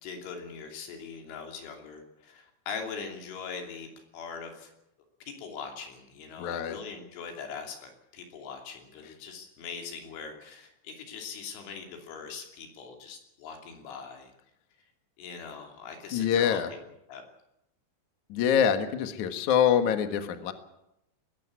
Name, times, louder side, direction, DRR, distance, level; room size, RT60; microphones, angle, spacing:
voice 1, 0.0-4.7 5.3-14.3 15.2-16.8 17.1-17.2, left 5 dB, 80° left, 3 dB, 5.3 m, -41 dB
voice 2, 6.4-6.8 16.1-16.7 18.3-20.5, left 8 dB, 60° left, 8 dB, 2.1 m, -25 dB
20.5 x 15.5 x 9.7 m, 0.85 s
omnidirectional pair, 5.5 m